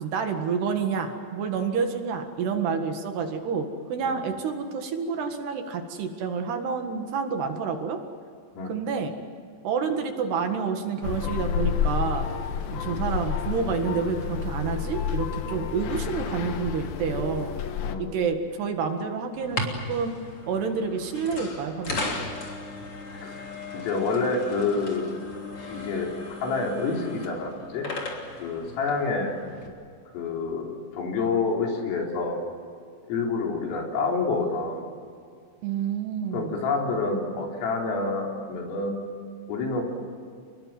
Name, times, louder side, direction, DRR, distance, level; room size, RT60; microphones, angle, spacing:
voice 1, 0.0-8.0 8.7-9.2 9.6-12.3 12.7-17.5 18.0-20.2 20.5-22.1 35.6-36.6, right 5 dB, 65° right, 5 dB, 3.6 m, -29 dB
sound 1, 11.0-18.0, left 7 dB, 65° left, 2.5 m, -30 dB
sound 2, 19.4-29.7, left 2 dB, 30° left, 3.4 m, -36 dB
voice 2, 23.1-23.4 23.7-25.1 25.7-26.1 26.4-27.9 28.4-29.3 30.1-32.4 33.0-34.9 36.3-39.0 39.5-39.8, left 4 dB, 85° left, 0 dB, 6.7 m, -28 dB
29.5 x 21.5 x 7.7 m, 2.3 s
omnidirectional pair, 5.7 m